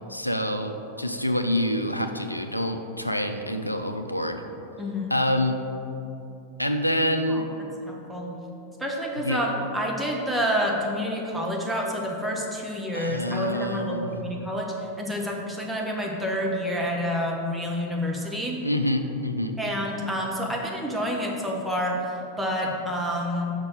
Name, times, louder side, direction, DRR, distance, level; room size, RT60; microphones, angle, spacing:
voice 1, 0.1-4.4 5.1-5.6 6.6-7.4 9.2-9.4 12.9-14.2 18.6-19.5, left 1 dB, 90° left, 6 dB, 0.5 m, -26 dB
voice 2, 4.8-5.1 7.3-7.4 7.9-8.3 8.8-18.6 19.6-23.5, equal, 5° right, -2 dB, 1.1 m, -28 dB
6.0 x 4.3 x 6.2 m, 2.8 s
figure-of-eight pair, 90°, 0 cm